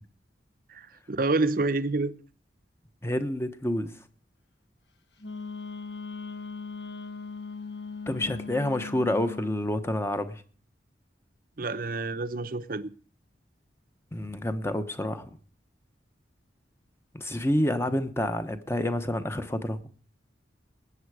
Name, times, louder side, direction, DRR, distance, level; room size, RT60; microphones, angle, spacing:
voice 1, 0.7-2.1 11.6-12.9, right 3 dB, 50° right, 0.7 m, -28 dB
voice 2, 3.0-3.9 8.1-10.4 14.1-15.4 17.1-19.8, left 1 dB, 15° left, 1.0 m, -28 dB
Wind instrument woodwind instrument, 5.2-9.6, left 4 dB, 65° left, 1.2 m, -39 dB
19.5 x 8.8 x 4.8 m
head